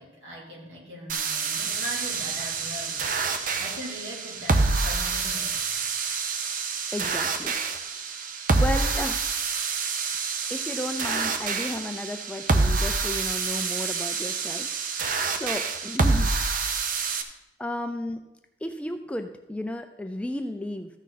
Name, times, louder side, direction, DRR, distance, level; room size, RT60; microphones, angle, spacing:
voice 1, 0.0-5.9, equal, 70° right, -3 dB, 3.0 m, -40 dB
sound 1, 1.1-17.2, right 4 dB, 45° right, 0.7 m, -27 dB
voice 2, 6.9-7.6 8.6-9.2 10.5-14.7 15.3-16.3 17.6-18.2 18.6-20.9, left 1 dB, 5° left, 6 dB, 0.4 m, -33 dB
14.0 x 6.2 x 4.1 m, 0.96 s
head